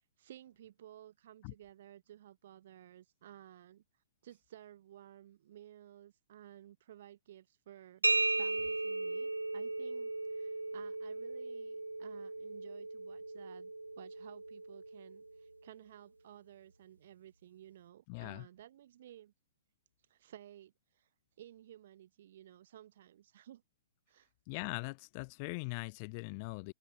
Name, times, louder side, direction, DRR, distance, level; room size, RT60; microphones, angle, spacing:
voice 1, 0.2-3.8 4.2-8.1 8.4-19.3 20.1-21.1 21.4-23.6 24.1-24.3, right 11 dB, 50° right, 7.6 m, -55 dB
sound 1, 8.0-15.6, right 2 dB, 80° right, 0.7 m, -37 dB
voice 2, 18.1-18.5 24.5-26.7, left 31 dB, 35° left, 0.6 m, -41 dB
figure-of-eight pair, 115°, 0 cm